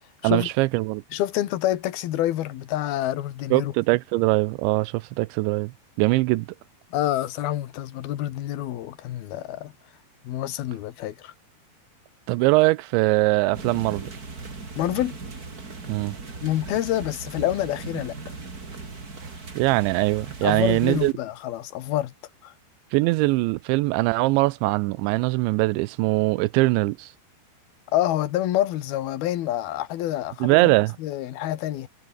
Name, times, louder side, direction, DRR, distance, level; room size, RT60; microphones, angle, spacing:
voice 1, 0.2-1.0 3.5-6.5 12.3-14.1 15.9-16.2 19.6-21.1 22.9-27.1 30.4-31.0, right 21 dB, 85° right, 2.9 m, -22 dB
voice 2, 1.1-3.7 6.9-9.7 10.2-11.3 14.8-15.2 16.4-18.2 20.4-22.1 22.4-22.5 27.9-30.7 31.0-31.9, left 13 dB, 65° left, 3.0 m, -27 dB
sound 1, 13.5-21.1, right 3 dB, 25° right, 3.0 m, -38 dB
omnidirectional pair, 5.4 m